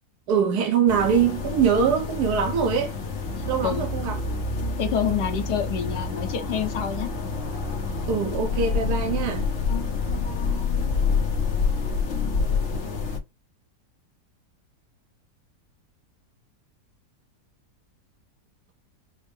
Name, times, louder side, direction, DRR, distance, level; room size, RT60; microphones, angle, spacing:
voice 1, 0.3-2.9 3.5-4.2 8.1-9.5, right 7 dB, 70° right, 1.3 m, -23 dB
sound 1, 0.9-13.2, left 4 dB, 50° left, 1.3 m, -27 dB
voice 2, 4.8-7.1 9.7-10.9, left 8 dB, 75° left, 1.6 m, -29 dB
5.5 x 2.1 x 3.2 m
omnidirectional pair, 1.8 m